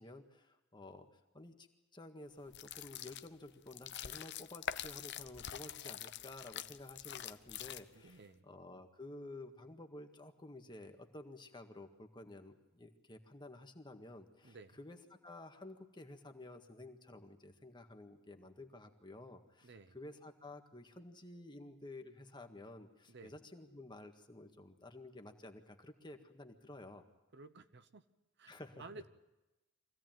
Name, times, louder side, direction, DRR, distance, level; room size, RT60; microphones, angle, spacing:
voice 1, 0.0-1.7 1.9-27.0 28.5-28.9, left 2 dB, 20° left, 1.8 m, -52 dB
sound 1, 2.5-8.1, left 9 dB, 55° left, 0.8 m, -45 dB
voice 2, 8.0-8.5 14.4-14.8 19.6-20.0 23.1-23.4 27.3-28.0 28.4-29.1, right 3 dB, 55° right, 0.9 m, -54 dB
24.5 x 16.5 x 9.2 m
head